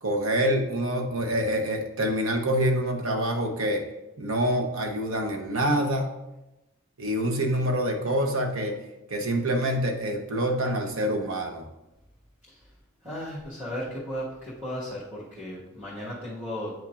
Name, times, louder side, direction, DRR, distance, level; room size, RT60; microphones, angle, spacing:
voice 1, 0.0-3.8 4.2-6.1 7.0-8.7 9.1-11.6, equal, 80° right, 3 dB, 1.0 m, -26 dB
voice 2, 13.0-16.7, equal, 10° right, -10 dB, 1.5 m, -35 dB
9.0 x 5.7 x 2.5 m, 0.96 s
head